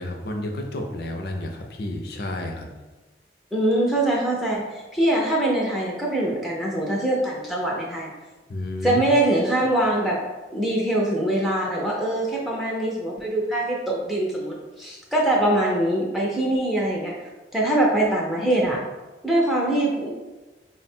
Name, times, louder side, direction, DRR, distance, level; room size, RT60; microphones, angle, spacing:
voice 1, 0.0-2.7 8.5-9.0, left 1 dB, 60° left, 3 dB, 0.5 m, -31 dB
voice 2, 3.5-8.1 8.8-10.2 10.5-18.8 19.2-20.1, right 1 dB, ahead, -3 dB, 0.4 m, -23 dB
4.0 x 2.1 x 4.2 m, 1.2 s
head